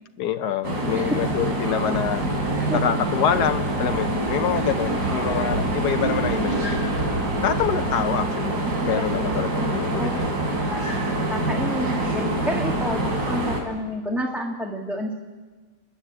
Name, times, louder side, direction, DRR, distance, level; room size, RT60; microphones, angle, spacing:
voice 1, 0.2-2.3 2.7-6.7 7.4-8.5 8.8-10.3, left 9 dB, 80° left, 9 dB, 1.4 m, -26 dB
sound 1, 0.6-13.6, right 1 dB, 85° right, 3.8 m, -25 dB
voice 2, 1.6-2.0 2.4-2.8 5.1-5.6 8.6-9.0 10.0-10.8 11.3-15.1, equal, ahead, 0 dB, 1.5 m, -30 dB
29.5 x 10.5 x 8.7 m, 1.3 s
omnidirectional pair, 1.7 m